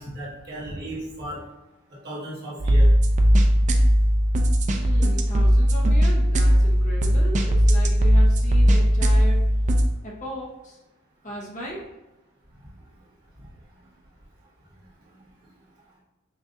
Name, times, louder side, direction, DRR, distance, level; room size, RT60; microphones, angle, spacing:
voice 1, 0.0-1.4 2.0-2.9, right 1 dB, 50° right, -7 dB, 1.4 m, -35 dB
sound 1, 2.6-9.8, equal, 35° right, 0.4 m, -18 dB
voice 2, 4.7-9.4 10.0-10.8 11.2-11.9, equal, 40° left, -3 dB, 1.0 m, -36 dB
5.8 x 2.5 x 2.6 m, 1.0 s
head